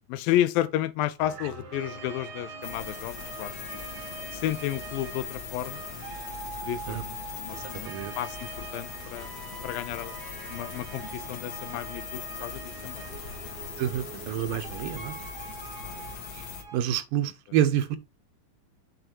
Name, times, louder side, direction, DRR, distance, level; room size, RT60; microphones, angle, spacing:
voice 1, 0.1-3.5 4.3-5.8 6.6-9.3 9.6-10.2 10.5-13.0 15.8-16.0, left 13 dB, 80° left, 2.4 m, -32 dB
sound 1, 1.2-16.8, right 4 dB, 55° right, 1.1 m, -43 dB
sound 2, 2.6-16.6, left 7 dB, 55° left, 2.1 m, -41 dB
voice 2, 7.5-8.1 13.8-15.1 16.3-16.5 16.7-18.0, right 10 dB, 80° right, 2.3 m, -28 dB
7.9 x 3.8 x 4.5 m
omnidirectional pair, 4.2 m